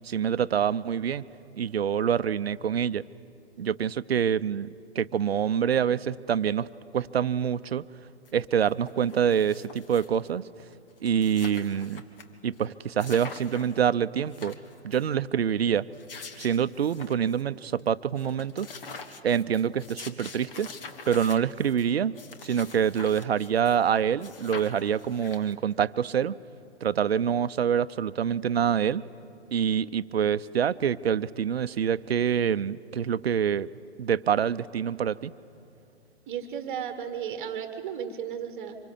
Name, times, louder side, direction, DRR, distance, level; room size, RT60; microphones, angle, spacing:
voice 1, 0.0-1.2 1.6-3.1 3.6-4.7 4.9-6.7 6.9-7.9 8.3-10.5 11.0-12.0 12.4-14.6 14.8-15.9 16.4-18.7 19.2-20.7 21.1-26.4 26.8-29.0 29.5-33.7 34.0-35.3, right 8 dB, 65° right, 16 dB, 0.7 m, -26 dB
sound 1, 8.2-8.3 8.6-10.3 10.7-10.8 11.0-12.2 12.6-12.7 13.0-13.8 14.2-15.1 15.8-17.4 17.8-17.9 18.2-23.9 24.2-25.7, left 4 dB, 55° left, 1.9 m, -44 dB
voice 2, 36.3-38.8, right 8 dB, 25° right, 7 dB, 1.4 m, -34 dB
25.5 x 22.5 x 8.4 m, 2.6 s
figure-of-eight pair, 120°, 33 cm